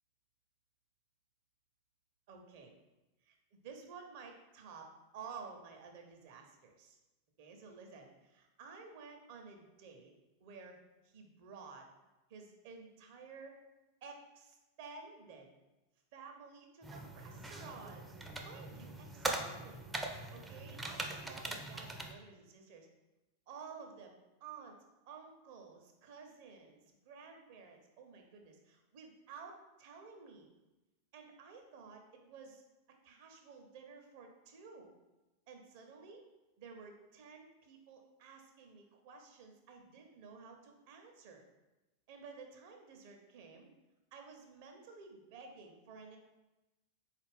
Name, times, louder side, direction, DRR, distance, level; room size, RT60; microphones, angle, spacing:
voice 1, 2.3-2.7 3.2-7.0 7.4-10.1 10.4-10.8 11.0-11.9 12.3-13.6 14.0-15.5 16.1-18.1 18.4-19.8 20.3-22.9 23.5-24.1 24.4-24.8 25.1-30.5 31.1-32.6 33.0-34.9 35.5-36.3 36.6-41.4 42.1-43.7 44.1-46.2, right 5 dB, 50° right, 3 dB, 0.6 m, -53 dB
sound 1, 16.8-22.1, right 2 dB, 10° right, 0.4 m, -42 dB
4.0 x 2.4 x 3.4 m, 1.0 s
figure-of-eight pair, 90°, 0 cm